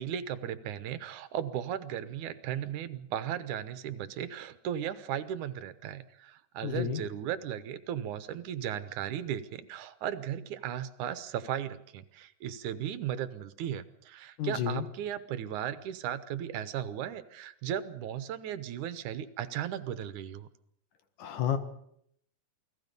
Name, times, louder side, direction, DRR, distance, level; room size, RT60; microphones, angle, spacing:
voice 1, 0.0-20.5, right 10 dB, 75° right, 12 dB, 2.4 m, -36 dB
voice 2, 6.6-7.0 14.4-14.8 21.2-21.6, left 9 dB, 85° left, 8 dB, 3.2 m, -30 dB
28.5 x 19.0 x 5.3 m, 0.71 s
omnidirectional pair, 3.6 m